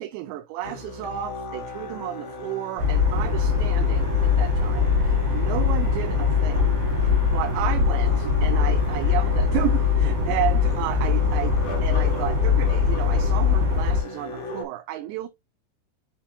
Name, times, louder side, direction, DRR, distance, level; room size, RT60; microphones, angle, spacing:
voice 1, 0.0-6.7 7.0-15.3, right 14 dB, 80° right, 2.8 m, -32 dB
Musical instrument, 0.6-14.6, left 2 dB, 50° left, 3.2 m, -38 dB
Keyboard (musical), 1.0-3.6, left 9 dB, 75° left, 3.2 m, -42 dB
sound 1, 2.8-14.0, left 6 dB, 45° right, 3.7 m, -22 dB
6.8 x 5.9 x 2.6 m
omnidirectional pair, 5.2 m